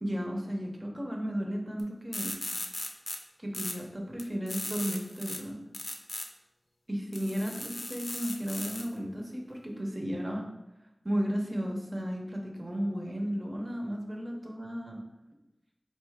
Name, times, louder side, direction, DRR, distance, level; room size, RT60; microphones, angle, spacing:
voice 1, 0.0-2.3 3.4-5.6 6.9-10.5 11.0-15.0, equal, 45° right, 0 dB, 0.8 m, -34 dB
sound 1, 1.8-1.9 2.1-3.2 3.5-3.7 4.2-5.4 5.7-6.2 7.1-8.9, left 1 dB, 60° left, 0.5 m, -37 dB
4.3 x 2.7 x 3.5 m, 0.94 s
wide cardioid pair, 50°, 0 cm